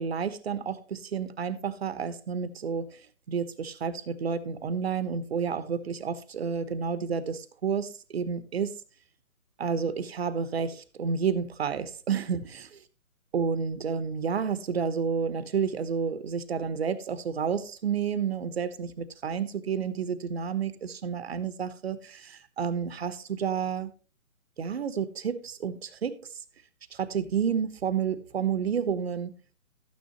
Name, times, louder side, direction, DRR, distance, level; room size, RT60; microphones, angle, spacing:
voice 1, 0.0-3.0 3.3-8.7 9.6-12.6 13.3-23.9 24.6-26.2 26.9-29.4, right 6 dB, 45° right, 1.1 m, -30 dB
13.0 x 9.6 x 2.9 m
figure-of-eight pair, 155°, 43 cm